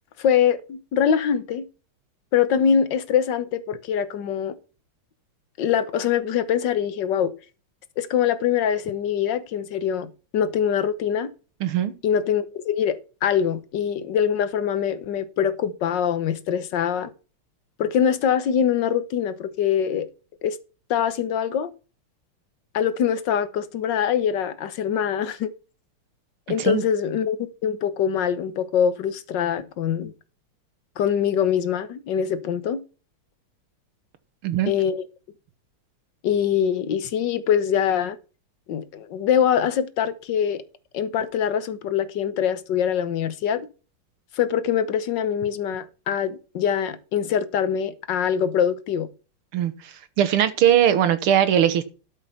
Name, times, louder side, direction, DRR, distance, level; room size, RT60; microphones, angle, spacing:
voice 1, 0.2-1.6 2.3-4.6 5.6-7.3 8.0-11.3 12.0-17.1 17.8-20.1 20.4-20.6 20.9-21.7 22.7-25.5 26.5-27.4 27.6-30.1 31.0-32.8 34.7-35.0 36.2-38.2 38.7-40.6 40.9-43.7 44.3-49.1, left 8 dB, 60° left, 1.5 m, -23 dB
voice 2, 11.6-11.9 26.6-26.8 34.4-34.7 49.5-49.7 50.2-51.9, right 10 dB, 80° right, 2.0 m, -20 dB
12.5 x 5.7 x 5.7 m
omnidirectional pair, 2.4 m